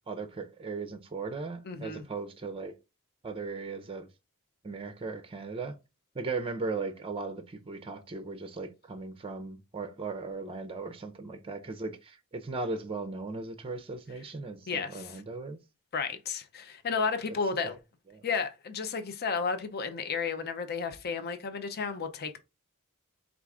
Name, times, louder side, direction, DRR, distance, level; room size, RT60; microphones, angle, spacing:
voice 1, 0.1-2.7 3.2-4.1 4.6-5.7 6.1-15.6 18.1-18.2, right 3 dB, 25° right, 0.5 m, -37 dB
voice 2, 1.6-2.0 14.7-15.2 15.9-17.8 18.2-22.4, left 5 dB, 45° left, 0.6 m, -32 dB
4.6 x 2.5 x 3.6 m
head